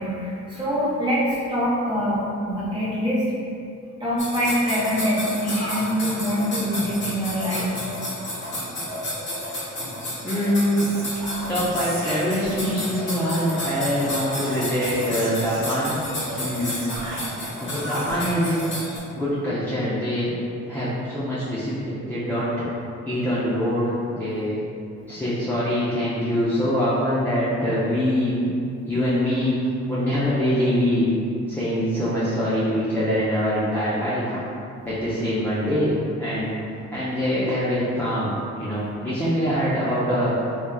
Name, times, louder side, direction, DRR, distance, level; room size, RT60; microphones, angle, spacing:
voice 1, 0.0-3.2 4.0-7.7 17.7-17.8, equal, 15° right, -9 dB, 1.0 m, -24 dB
sound 1, 4.2-19.0, left 1 dB, 40° left, 0.9 m, -31 dB
voice 2, 10.2-10.9 11.5-15.9 16.4-16.8 17.6-18.6 19.2-20.3 20.7-22.5 23.1-24.6 25.1-28.5 28.9-31.1 31.5-34.4 34.8-36.6 36.9-40.3, equal, 5° left, -10 dB, 0.5 m, -24 dB
Whispering, 10.7-13.0 13.9-18.3, right 1 dB, 75° right, 0.6 m, -37 dB
3.0 x 2.3 x 2.2 m, 2.5 s
cardioid pair, 90°, 30 cm